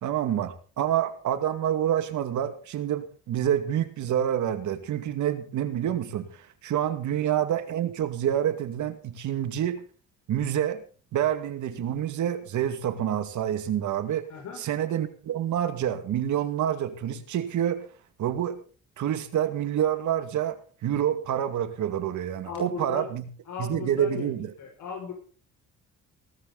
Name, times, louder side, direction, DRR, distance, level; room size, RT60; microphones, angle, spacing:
voice 1, 0.0-9.8 10.3-10.8 11.1-14.3 14.6-17.8 18.2-18.6 19.0-23.2 23.6-24.5, right 10 dB, 75° right, 9 dB, 2.3 m, -27 dB
voice 2, 14.3-14.6 22.4-23.1 23.5-24.3 24.6-25.1, left 6 dB, 75° left, 0 dB, 6.2 m, -36 dB
18.5 x 13.0 x 4.1 m, 0.40 s
cardioid pair, 90°, 30 cm